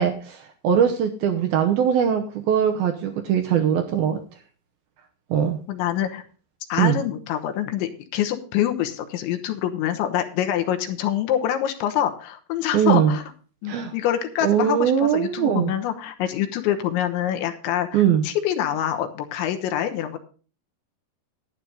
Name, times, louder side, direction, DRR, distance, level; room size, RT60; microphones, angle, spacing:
voice 1, 0.0-4.2 5.3-5.6 6.8-7.0 12.7-13.2 13.7-13.9 14.4-15.7 17.9-18.2, right 8 dB, 75° right, 5 dB, 2.3 m, -21 dB
voice 2, 5.7-6.2 6.7-13.2 13.6-20.2, left 11 dB, 85° left, 7 dB, 3.5 m, -25 dB
11.5 x 10.0 x 3.9 m, 0.38 s
omnidirectional pair, 5.3 m